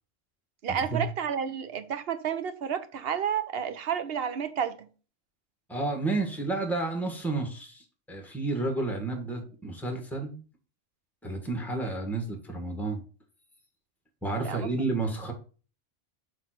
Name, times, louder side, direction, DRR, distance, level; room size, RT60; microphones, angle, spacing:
voice 1, 0.6-4.9 14.4-14.7, right 8 dB, 55° right, 0.9 m, -31 dB
voice 2, 5.7-10.4 11.2-13.0 14.2-15.3, right 3 dB, ahead, 1.6 m, -31 dB
7.3 x 3.3 x 5.8 m
omnidirectional pair, 1.3 m